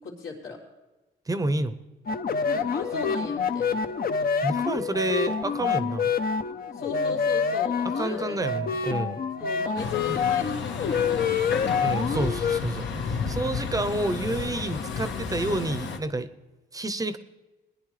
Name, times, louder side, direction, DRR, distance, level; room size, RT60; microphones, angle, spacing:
voice 1, 0.0-0.6 2.5-3.8 6.7-8.4 9.4-11.4, left 5 dB, 85° left, -4 dB, 3.7 m, -37 dB
voice 2, 1.3-1.8 4.4-6.1 7.8-9.2 11.8-16.3 16.7-17.2, right 2 dB, 15° right, 12 dB, 0.7 m, -29 dB
sound 1, 2.1-12.6, left 6 dB, 50° left, 0.8 m, -27 dB
Truck, 9.8-16.0, left 5 dB, 70° left, 1.2 m, -32 dB
20.0 x 10.0 x 3.3 m, 1.1 s
cardioid pair, 90°, 20 cm